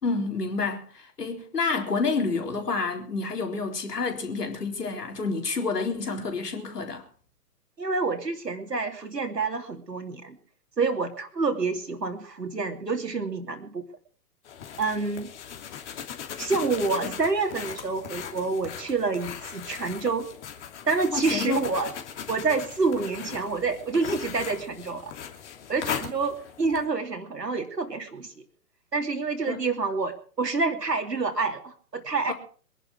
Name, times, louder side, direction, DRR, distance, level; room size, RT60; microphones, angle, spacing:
voice 1, 0.0-7.0 17.0-17.1 21.1-21.7 29.5-29.7 32.3-32.4, left 4 dB, 70° left, 4.1 m, -29 dB
voice 2, 7.8-10.4 10.8-13.8 14.8-15.3 16.4-20.3 20.9-21.9 22.3-25.1 25.7-28.4 28.9-32.3, right 4 dB, 80° right, 3.0 m, -28 dB
sound 1, 14.4-26.9, left 8 dB, 45° left, 2.9 m, -39 dB
23.0 x 11.0 x 4.8 m
figure-of-eight pair, 120°, 48 cm